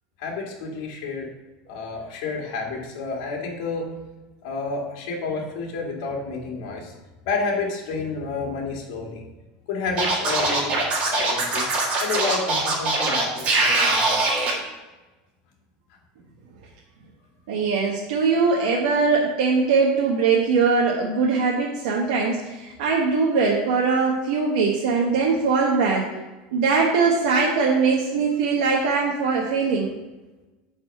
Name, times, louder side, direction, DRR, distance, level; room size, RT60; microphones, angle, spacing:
voice 1, 0.2-1.3 1.7-3.9 4.4-6.9 7.2-9.2 9.7-11.7 12.0-14.2, left 4 dB, 55° left, -1 dB, 2.2 m, -30 dB
Scratching (performance technique), 10.0-14.5, right 2 dB, 30° right, 1.6 m, -22 dB
voice 2, 17.5-26.1 26.5-29.9, right 4 dB, 75° right, -3 dB, 1.2 m, -21 dB
9.0 x 4.2 x 5.5 m, 1.1 s
supercardioid pair, 170°, 4 cm